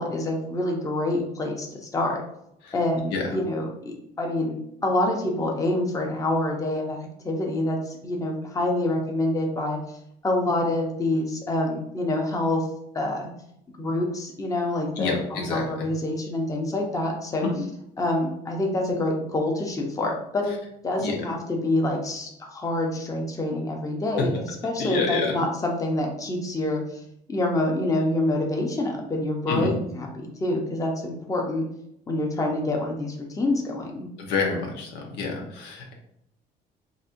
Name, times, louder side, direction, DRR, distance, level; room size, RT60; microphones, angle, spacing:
voice 1, 0.0-2.2 2.7-7.0 7.2-10.0 10.2-12.6 12.9-13.3 13.8-17.5 18.0-20.6 20.8-24.3 24.6-27.0 27.3-31.6 32.1-34.1, left 1 dB, 20° left, 0 dB, 0.7 m, -26 dB
voice 2, 15.0-15.6 21.0-21.2 24.8-25.3 29.5-29.7 34.2-35.9, left 4 dB, 90° left, 0 dB, 0.9 m, -28 dB
4.1 x 2.6 x 2.5 m, 0.76 s
cardioid pair, 110°, 17 cm